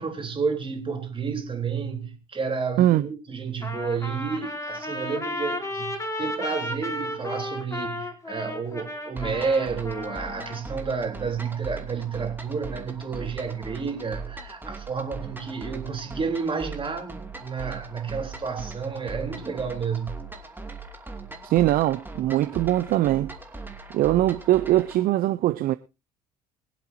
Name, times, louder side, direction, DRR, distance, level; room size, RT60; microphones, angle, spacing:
voice 1, 0.0-20.2, right 5 dB, 30° right, 3.8 m, -30 dB
Trumpet, 3.6-10.6, left 1 dB, 15° left, 3.6 m, -33 dB
sound 1, 9.2-25.0, right 3 dB, 10° right, 2.6 m, -40 dB
voice 2, 21.4-23.3 23.9-25.7, right 14 dB, 55° right, 0.7 m, -21 dB
24.0 x 8.2 x 2.8 m
hypercardioid pair, 60°, 18 cm